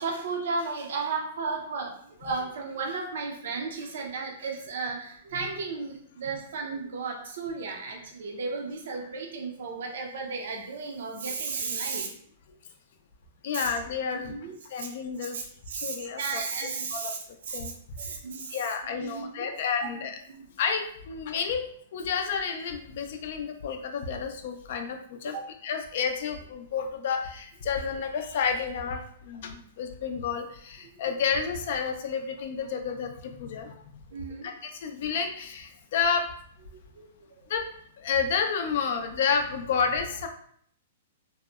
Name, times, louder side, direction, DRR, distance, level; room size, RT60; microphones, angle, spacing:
voice 1, 0.0-12.1 13.5-13.7 14.1-14.9 15.3-17.2 17.5-18.6 18.8-20.0 20.3-20.4 25.3-25.5 34.1-34.5 36.9-37.1 37.4-37.5, right 4 dB, 70° right, 1 dB, 0.4 m, -34 dB
voice 2, 13.4-14.4 14.7-15.4 15.7-16.4 16.9-17.1 17.5-17.7 18.5-20.2 20.6-21.6 21.9-25.4 25.6-33.8 34.4-36.3 37.5-37.7 38.0-40.3, left 6 dB, 60° left, 5 dB, 0.4 m, -30 dB
2.7 x 2.0 x 2.3 m, 0.63 s
hypercardioid pair, 130°, 0 cm